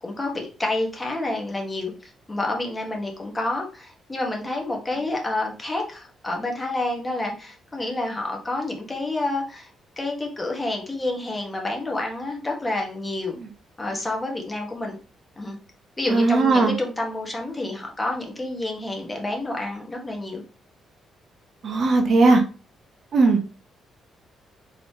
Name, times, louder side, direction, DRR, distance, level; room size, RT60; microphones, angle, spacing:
voice 1, 0.0-9.7 10.0-13.4 13.8-15.0 15.4-15.6 16.0-20.4, left 2 dB, 20° left, 0 dB, 1.3 m, -29 dB
voice 2, 16.1-16.7 21.6-22.4 23.1-23.4, right 3 dB, 55° right, 4 dB, 0.8 m, -18 dB
3.9 x 3.2 x 2.9 m, 0.37 s
cardioid pair, 90°, 0 cm